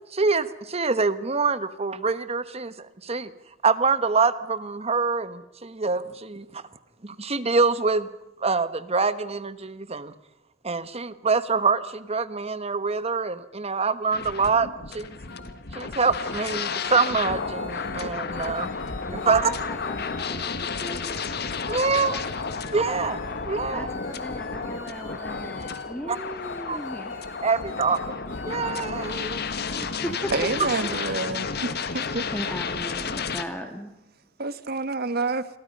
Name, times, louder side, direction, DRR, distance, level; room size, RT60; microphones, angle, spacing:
voice 1, 0.1-3.3 3.6-6.6 7.0-8.1 8.4-10.1 10.6-15.2 15.7-18.7 19.1-19.5 21.7-22.1 22.7-23.2 23.5-23.9 26.1-26.2 26.7-26.8 27.4-28.0 28.5-29.4 30.6-30.7, right 4 dB, 35° right, 13 dB, 1.3 m, -25 dB
sound 1, 14.1-33.4, left 5 dB, 55° left, 1.6 m, -32 dB
sound 2, 15.3-15.5 15.9-20.8 21.3-32.1, left 5 dB, 75° left, 5.5 m, -42 dB
voice 2, 19.1-20.5 20.8-21.2 23.7-27.2 29.7-30.3 31.9-33.9, equal, 10° left, 5 dB, 1.9 m, -37 dB
voice 3, 30.3-32.3 34.4-35.5, right 3 dB, 55° right, 13 dB, 1.4 m, -28 dB
29.0 x 23.0 x 5.5 m, 0.95 s
head